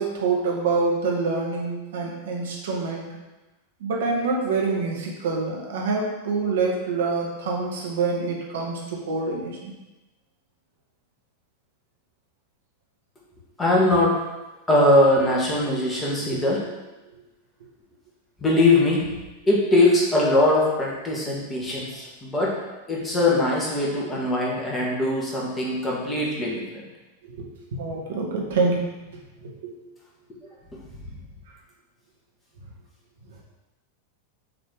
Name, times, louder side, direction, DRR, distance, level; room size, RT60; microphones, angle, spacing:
voice 1, 0.0-3.1 3.8-9.7 16.3-16.4 27.3-28.9 29.4-29.7, right 4 dB, 60° right, -1 dB, 1.3 m, -26 dB
voice 2, 13.6-14.2 14.7-16.6 18.4-19.1 19.5-22.6 22.9-26.6, left 2 dB, 15° left, -4 dB, 1.7 m, -21 dB
6.3 x 3.3 x 4.6 m, 1.1 s
figure-of-eight pair, 90°, 0 cm